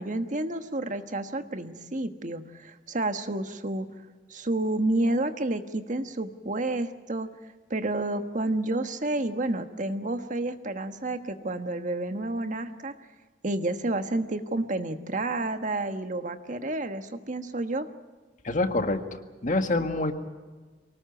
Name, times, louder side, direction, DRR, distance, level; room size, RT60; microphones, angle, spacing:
voice 1, 0.0-3.9 4.3-7.3 7.7-12.9 13.4-17.9, right 2 dB, 45° right, 8 dB, 1.4 m, -30 dB
voice 2, 18.4-20.1, left 2 dB, 45° left, 7 dB, 1.8 m, -27 dB
24.5 x 19.0 x 7.8 m, 1.4 s
head